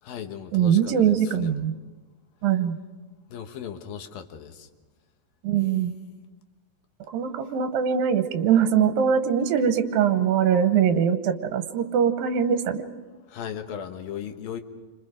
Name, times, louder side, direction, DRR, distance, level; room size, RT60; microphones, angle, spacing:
voice 1, 0.0-1.6 3.3-4.7 13.3-14.6, left 8 dB, 85° left, 6 dB, 3.1 m, -37 dB
voice 2, 0.5-1.7 2.4-2.8 5.4-5.9 7.1-12.8, right 8 dB, 80° right, 8 dB, 2.8 m, -22 dB
29.5 x 25.5 x 5.1 m, 1.2 s
omnidirectional pair, 4.0 m